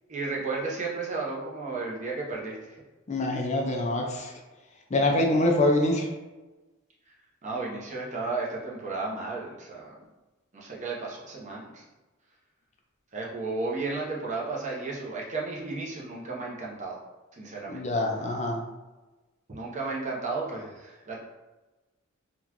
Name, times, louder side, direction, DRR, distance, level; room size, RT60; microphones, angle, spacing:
voice 1, 0.1-2.6 7.4-10.0 10.5-11.8 13.1-17.0 17.3-17.8 19.5-21.2, right 3 dB, 35° right, -4 dB, 0.8 m, -33 dB
voice 2, 3.1-4.3 4.9-6.1 17.7-18.6, left 1 dB, 35° left, 1 dB, 0.5 m, -25 dB
3.9 x 2.4 x 2.9 m, 1.1 s
head